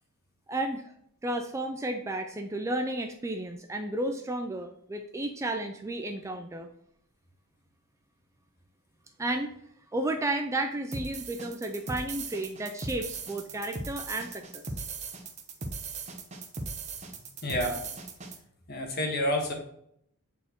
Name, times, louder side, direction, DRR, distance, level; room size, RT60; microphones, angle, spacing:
voice 1, 0.5-0.9 1.2-6.7 9.2-9.5 9.9-14.6, right 1 dB, 15° right, 5 dB, 0.3 m, -32 dB
sound 1, 10.9-18.4, right 3 dB, 30° right, 0.7 m, -38 dB
voice 2, 17.4-17.8 18.7-19.5, left 1 dB, 45° left, 2 dB, 1.4 m, -29 dB
8.0 x 4.4 x 3.0 m, 0.72 s
head